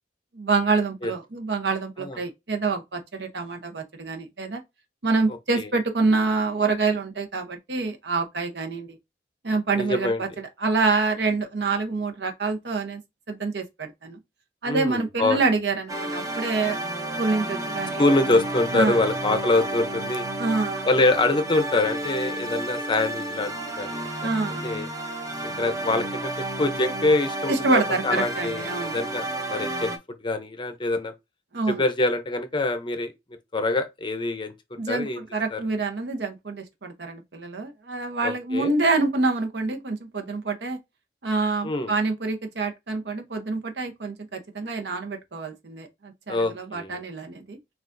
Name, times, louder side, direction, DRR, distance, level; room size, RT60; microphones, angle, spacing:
voice 1, 0.3-4.6 5.0-9.0 9.4-10.3 10.6-13.0 13.3-14.2 14.6-16.8 17.2-18.0 18.7-19.0 20.4-20.9 24.2-24.7 27.5-29.0 31.5-31.8 34.8-40.8 41.2-47.6, right 3 dB, 70° right, 0.8 m, -26 dB
voice 2, 9.7-10.3 14.6-15.4 18.0-20.3 20.8-24.3 24.6-24.9 25.4-26.3 26.6-29.9 30.2-31.1 31.7-33.1 33.5-35.2 35.5-35.6 38.2-38.7 41.6-41.9 46.3-47.0, left 2 dB, 25° left, 0.6 m, -25 dB
sound 1, 15.9-30.0, right 1 dB, 20° right, 0.7 m, -31 dB
5.9 x 2.4 x 2.6 m
head